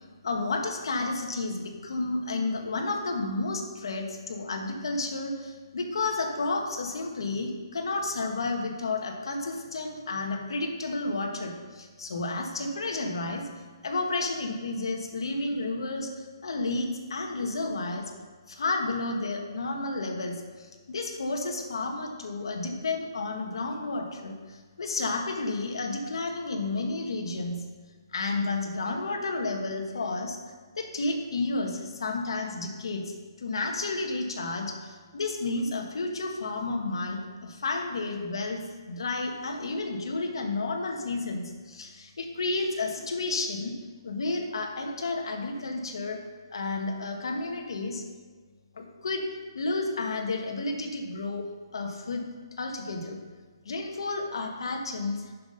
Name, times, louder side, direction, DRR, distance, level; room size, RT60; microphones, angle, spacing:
voice 1, 0.0-13.5 13.8-18.0 18.5-27.6 28.1-30.4 30.8-43.7 44.0-46.2 46.5-48.0 48.7-49.2 49.5-51.5 51.7-52.2 52.6-53.2 53.6-55.3, left 3 dB, 65° left, 3 dB, 1.5 m, -31 dB
9.4 x 6.1 x 5.2 m, 1.4 s
hypercardioid pair, 175°, 3 cm